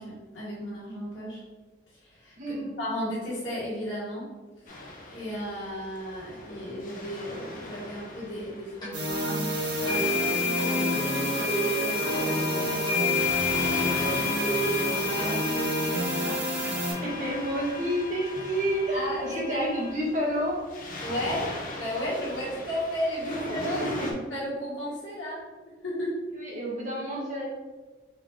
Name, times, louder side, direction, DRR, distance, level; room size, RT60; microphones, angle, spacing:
voice 1, 0.0-1.4 2.0-4.3 5.1-13.4 14.3-16.4 18.9-19.7 21.0-25.4 25.8-26.1, equal, 90° left, -7 dB, 1.3 m, -34 dB
voice 2, 2.4-2.7 16.6-16.7 17.0-20.6 23.3-23.5 23.8-23.9 26.3-27.4, equal, 40° right, -5 dB, 1.3 m, -30 dB
Waves surf, 4.7-24.1, left 1 dB, 45° left, 0.8 m, -41 dB
sound 1, 8.8-8.9 9.9-19.9, left 4 dB, 25° left, 1.3 m, -31 dB
sound 2, 8.9-16.9, right 1 dB, 75° right, 1.5 m, -29 dB
3.7 x 3.1 x 3.5 m, 1.3 s
head